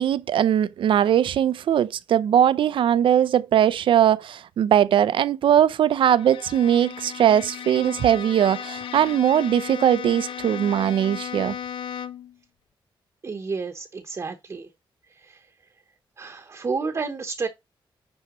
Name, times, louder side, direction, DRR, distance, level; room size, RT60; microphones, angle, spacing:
voice 1, 0.0-11.6, right 10 dB, 70° right, 0.4 m, -20 dB
Bowed string instrument, 5.9-12.4, left 8 dB, 80° left, 0.5 m, -36 dB
voice 2, 13.2-14.7 15.1-15.4 16.2-17.5, right 4 dB, 35° right, 0.9 m, -31 dB
9.6 x 4.5 x 3.0 m
wide cardioid pair, 135°, 9 cm